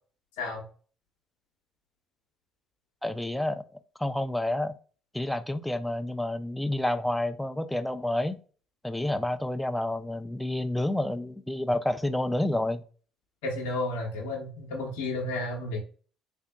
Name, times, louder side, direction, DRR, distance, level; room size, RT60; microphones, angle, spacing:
voice 1, 3.0-3.6 4.0-4.7 5.1-8.4 8.8-12.8, left 1 dB, 5° left, 0.4 m, -29 dB
voice 2, 13.4-15.8, left 2 dB, 80° left, 0.8 m, -32 dB
3.5 x 3.5 x 2.2 m
hypercardioid pair, 65°, 0 cm